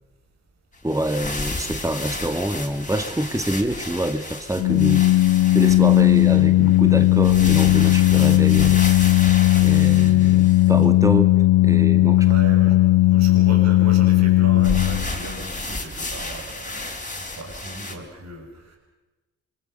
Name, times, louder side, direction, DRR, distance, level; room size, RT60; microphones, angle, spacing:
sound 1, 0.7-10.8 14.6-17.9, left 2 dB, 25° left, 4.8 m, -32 dB
voice 1, 0.8-5.1 5.5-8.8 9.1-9.2 9.6-11.3 11.6-12.3, right 1 dB, 10° right, 8 dB, 2.2 m, -26 dB
Organ, 4.6-15.4, left 17 dB, 80° left, 1.1 m, -16 dB
voice 2, 12.2-18.8, right 2 dB, 55° right, 3 dB, 6.1 m, -36 dB
25.0 x 22.5 x 6.8 m, 1.1 s
supercardioid pair, 50°, 33 cm